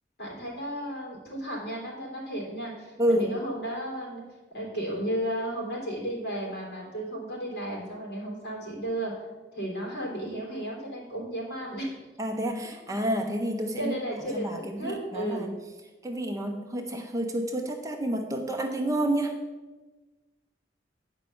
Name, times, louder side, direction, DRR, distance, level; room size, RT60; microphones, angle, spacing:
voice 1, 0.2-4.2 4.5-9.3 9.5-12.0 13.8-15.5, right 1 dB, 55° left, -3 dB, 3.5 m, -34 dB
voice 2, 3.0-3.4 12.2-14.0 14.3-15.5 16.0-19.4, right 1 dB, 20° right, 4 dB, 0.5 m, -29 dB
9.0 x 5.3 x 6.9 m, 1.2 s
head